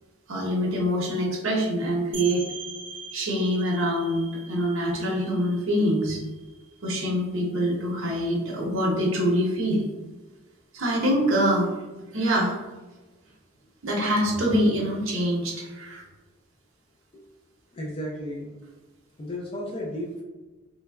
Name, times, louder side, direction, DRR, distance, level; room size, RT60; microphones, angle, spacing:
voice 1, 0.3-2.4 3.1-6.2 6.8-9.8 10.7-11.7 12.1-12.6 13.8-16.0, equal, 75° right, -2 dB, 0.7 m, -25 dB
sound 1, 2.1-7.6, right 5 dB, 40° right, 0.5 m, -42 dB
voice 2, 17.7-18.5 19.2-20.2, left 1 dB, 25° left, -3 dB, 0.3 m, -33 dB
3.2 x 2.1 x 2.2 m, 1.2 s
head